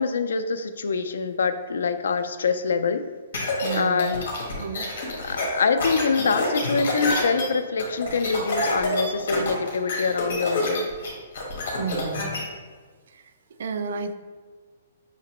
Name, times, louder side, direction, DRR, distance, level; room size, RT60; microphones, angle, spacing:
voice 1, 0.0-3.0 3.7-4.2 5.2-10.9, left 5 dB, 85° left, 10 dB, 0.3 m, -25 dB
sound 1, 3.3-12.4, left 2 dB, 50° left, 1.2 m, -27 dB
voice 2, 3.6-4.2 4.6-4.9 11.8-12.4 13.1-13.2 13.6-14.1, right 5 dB, 55° right, 9 dB, 0.3 m, -32 dB
5.8 x 2.9 x 2.9 m, 1.5 s
hypercardioid pair, 180°, 0 cm